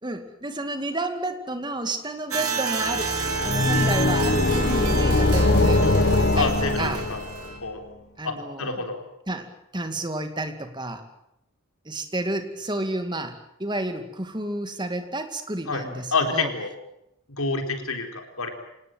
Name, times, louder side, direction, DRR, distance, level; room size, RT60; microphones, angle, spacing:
voice 1, 0.0-7.0 8.2-8.8 9.3-11.0 11.9-16.5, right 1 dB, 20° right, 7 dB, 2.3 m, -31 dB
sound 1, 2.3-7.6, right 5 dB, 85° right, 4.5 m, -30 dB
sound 2, 2.9-7.5, left 2 dB, 50° left, 1.7 m, -22 dB
voice 2, 6.3-7.2 7.6-7.8 8.2-9.0 15.7-15.8 16.1-16.7 17.3-18.5, left 4 dB, 75° left, 5 dB, 4.1 m, -27 dB
26.5 x 18.5 x 9.1 m, 0.83 s
head